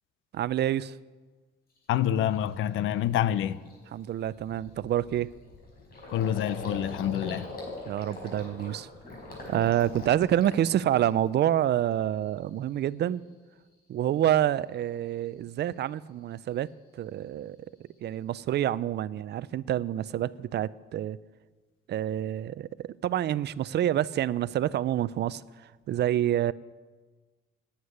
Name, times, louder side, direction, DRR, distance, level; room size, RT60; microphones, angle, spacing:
voice 1, 0.3-1.0 3.9-5.3 7.9-8.9 9.5-13.2 13.9-17.6 18.0-21.2 21.9-26.5, right 11 dB, 60° right, 0.4 m, -27 dB
Gurgling, 1.8-1.9 2.3-2.6 3.0-3.1 3.4-11.4 11.8-12.4, left 2 dB, 50° left, 5.0 m, -42 dB
voice 2, 1.9-3.6 6.1-7.5, left 10 dB, 80° left, 0.6 m, -27 dB
9.6 x 9.5 x 9.5 m
cardioid pair, 90°, 20 cm